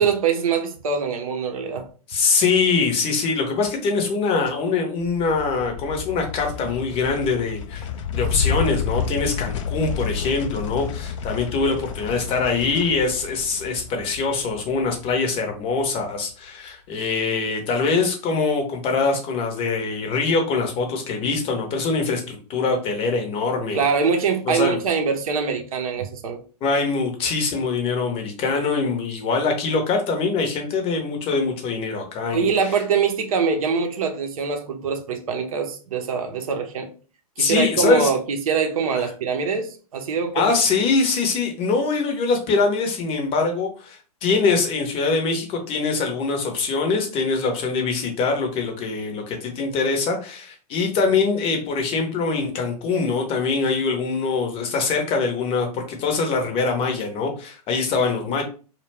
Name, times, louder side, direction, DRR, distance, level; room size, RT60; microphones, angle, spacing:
voice 1, 0.0-1.9 23.7-26.4 32.3-36.9 37.4-40.5, right 6 dB, 60° right, 0.6 m, -23 dB
voice 2, 2.1-7.9 8.1-23.8 24.5-24.8 26.6-32.5 37.4-38.1 38.9-39.1 40.3-58.4, left 4 dB, 30° left, 0.7 m, -23 dB
sound 1, 5.0-15.6, left 6 dB, 50° left, 0.4 m, -30 dB
2.2 x 2.2 x 3.3 m
figure-of-eight pair, 110°, 20 cm